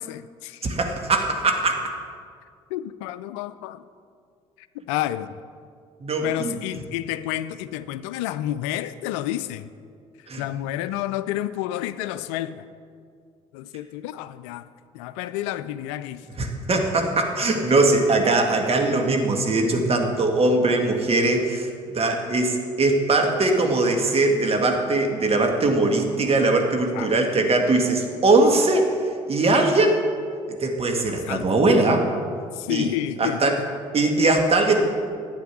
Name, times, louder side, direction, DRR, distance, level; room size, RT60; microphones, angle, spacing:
voice 1, 0.0-0.7 2.7-3.8 4.7-5.4 6.2-9.7 10.4-12.6 13.5-14.7 14.9-16.3 26.9-27.1 31.0-31.5 32.5-33.4, left 13 dB, 75° left, 0.4 m, -30 dB
voice 2, 0.6-1.9 6.0-6.6 10.3-10.4 16.4-28.9 29.3-30.0 30.6-32.1 32.7-32.9 33.2-33.6 33.9-34.8, right 2 dB, 40° right, 2.0 m, -21 dB
11.5 x 8.7 x 6.1 m
hypercardioid pair, 55°, 16 cm